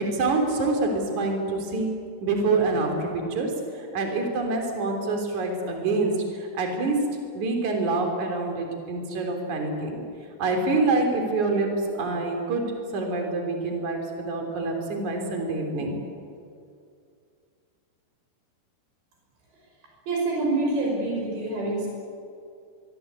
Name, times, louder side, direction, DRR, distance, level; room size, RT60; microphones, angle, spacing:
voice 1, 0.0-1.9 2.2-7.0 7.3-10.0 10.4-11.7 12.0-12.6 12.9-16.0, right 3 dB, 45° right, 3 dB, 4.6 m, -26 dB
voice 2, 20.1-21.9, right 2 dB, 85° right, -1 dB, 8.0 m, -26 dB
24.0 x 23.5 x 8.4 m, 2.4 s
omnidirectional pair, 4.9 m